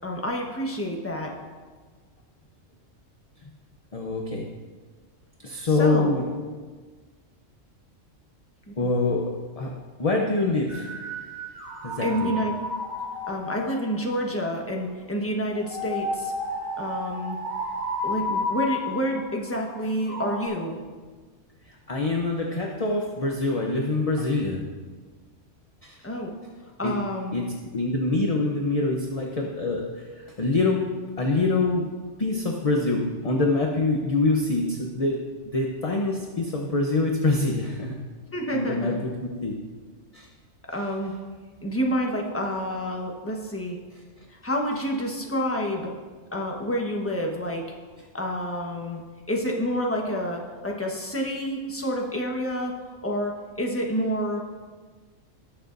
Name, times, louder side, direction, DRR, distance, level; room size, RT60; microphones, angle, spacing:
voice 1, 0.0-1.3 5.6-6.1 8.7-8.9 12.0-12.5 13.3-16.3 16.8-17.4 18.0-20.8 26.0-26.3 26.8-27.3 38.3-39.0 40.7-41.1 41.6-43.8 44.4-45.9 46.3-47.6 48.1-49.0 49.3-52.7 53.0-54.4, equal, 10° left, 0 dB, 1.1 m, -28 dB
voice 2, 3.9-4.4 5.4-6.3 8.8-9.7 10.0-10.9 11.8-12.3 21.9-24.6 25.8-26.0 26.8-26.9 27.3-27.4 27.7-29.8 30.4-30.8 31.2-31.8 32.2-35.2 35.4-37.9 38.5-39.5 40.1-40.3, left 2 dB, 35° left, 0 dB, 0.8 m, -25 dB
sound 1, 10.7-14.5 15.5-20.5, left 1 dB, 35° right, 2.7 m, -32 dB
18.5 x 6.7 x 2.6 m, 1.4 s
omnidirectional pair, 1.3 m